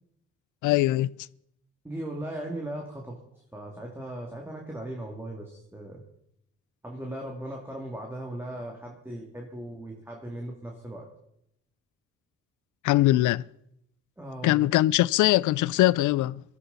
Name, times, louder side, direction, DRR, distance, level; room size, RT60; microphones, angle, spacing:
voice 1, 0.6-1.1 12.8-13.4 14.4-16.4, left 16 dB, 80° left, 0.5 m, -22 dB
voice 2, 1.8-3.2 3.5-6.0 6.8-11.1 14.2-14.7, right 1 dB, 10° right, 2.4 m, -38 dB
19.5 x 13.5 x 4.1 m
cardioid pair, 90°, 30 cm